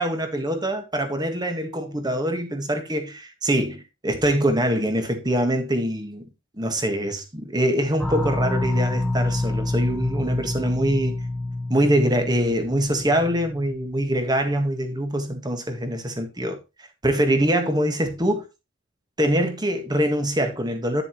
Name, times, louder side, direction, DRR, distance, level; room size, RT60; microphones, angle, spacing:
voice 1, 0.0-6.3 6.6-11.2 11.7-16.6 17.0-18.4 19.2-21.0, right 1 dB, 20° right, 1.7 m, -24 dB
sound 1, 8.0-14.3, left 2 dB, 5° left, 1.3 m, -28 dB
10.5 x 6.9 x 3.1 m
head